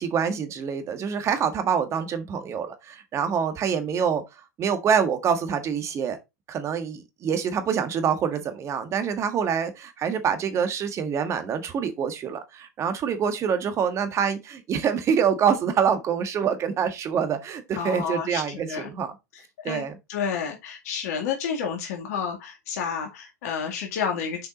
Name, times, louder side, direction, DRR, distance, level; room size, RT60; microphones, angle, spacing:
voice 1, 0.0-4.2 4.6-6.2 6.5-19.1 19.6-20.0, right 7 dB, 30° right, 1.6 m, -26 dB
voice 2, 17.7-18.9 19.6-24.5, left 7 dB, 60° left, 2.1 m, -30 dB
6.7 x 5.3 x 4.0 m
hypercardioid pair, 100°, 9 cm